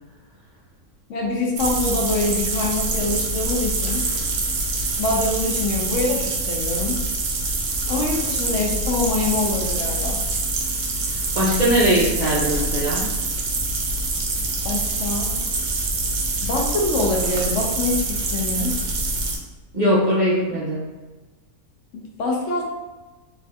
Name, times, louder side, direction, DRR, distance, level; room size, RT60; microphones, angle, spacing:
voice 1, 1.1-4.0 5.0-7.0 7.9-10.2 14.6-15.3 16.4-18.7 21.9-22.6, left 2 dB, 65° left, -1 dB, 0.8 m, -25 dB
sound 1, 1.6-19.4, right 2 dB, 80° right, 1.1 m, -25 dB
voice 2, 11.1-13.1 19.7-20.8, equal, 60° right, -9 dB, 0.4 m, -20 dB
3.3 x 2.6 x 2.2 m, 1.2 s
omnidirectional pair, 1.6 m